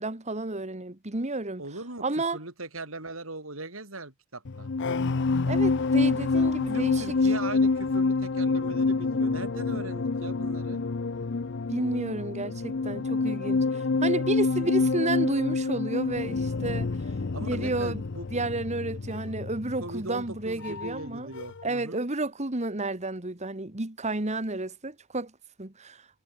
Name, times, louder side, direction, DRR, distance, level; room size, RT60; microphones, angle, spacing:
voice 1, 0.0-1.6 2.0-2.4 5.5-7.0 11.7-16.9 17.4-18.0 18.3-21.3 21.6-25.3 25.6-26.0, right 2 dB, 35° right, 1.8 m, -31 dB
voice 2, 1.6-4.7 6.7-10.8 14.6-14.9 17.3-18.3 19.8-22.0, right 2 dB, 90° right, 7.4 m, -39 dB
sound 1, 4.4-21.1 21.4-21.7, left 3 dB, 60° left, 0.7 m, -27 dB
head